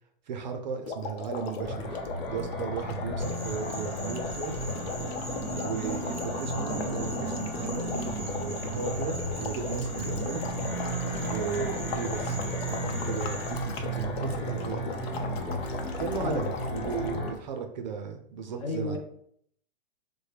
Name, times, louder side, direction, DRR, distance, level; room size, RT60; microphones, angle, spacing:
voice 1, 0.3-2.0 2.3-4.5 5.6-10.5 11.2-12.4 12.7-14.8 16.0-19.0, right 6 dB, 45° right, 6 dB, 0.4 m, -36 dB
sound 1, 0.8-17.3, left 5 dB, 85° left, 0.7 m, -38 dB
sound 2, 1.6-17.3, right 1 dB, 50° left, 1.3 m, -34 dB
sound 3, 3.2-13.5, equal, 5° left, 1.0 m, -43 dB
voice 2, 18.6-19.0, left 2 dB, 35° left, 2 dB, 0.5 m, -32 dB
4.3 x 2.1 x 3.2 m, 0.67 s
supercardioid pair, 175°, 31 cm